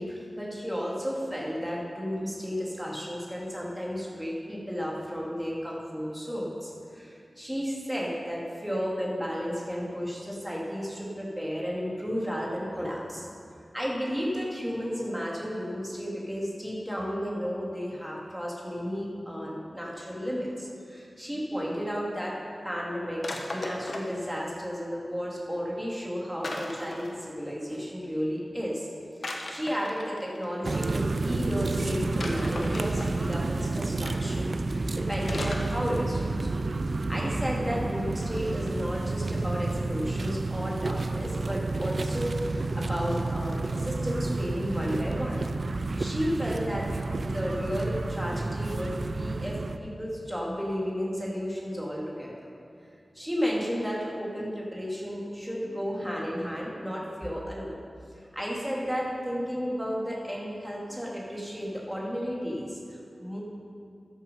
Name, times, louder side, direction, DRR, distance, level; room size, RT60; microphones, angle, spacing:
voice 1, 0.0-13.3 13.7-22.4 22.6-28.9 29.2-36.5 37.1-45.4 46.0-46.9 47.2-52.5 53.1-57.8 58.2-63.4, equal, 5° right, -4 dB, 2.4 m, -33 dB
sound 1, 23.2-24.2 26.4-27.1 29.2-30.5 32.2-33.3 34.1-34.3 35.3-35.8 36.1-36.2, left 2 dB, 65° left, 1.2 m, -36 dB
sound 2, 30.6-49.8, right 3 dB, 60° right, 0.5 m, -30 dB
13.0 x 7.4 x 5.4 m, 2.3 s
wide cardioid pair, 75°, 0 cm